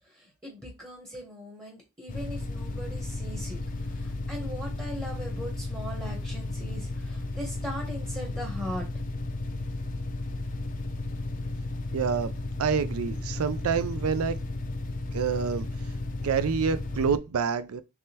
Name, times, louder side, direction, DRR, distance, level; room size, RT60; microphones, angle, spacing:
voice 1, 0.0-9.0, equal, 15° right, 0.9 m, -40 dB
sound 1, 2.1-17.2, left 2 dB, 40° left, 0.5 m, -34 dB
voice 2, 11.9-12.3 12.6-14.4 15.1-15.7 16.2-17.8, right 6 dB, 90° right, 0.4 m, -27 dB
3.5 x 3.2 x 2.8 m
head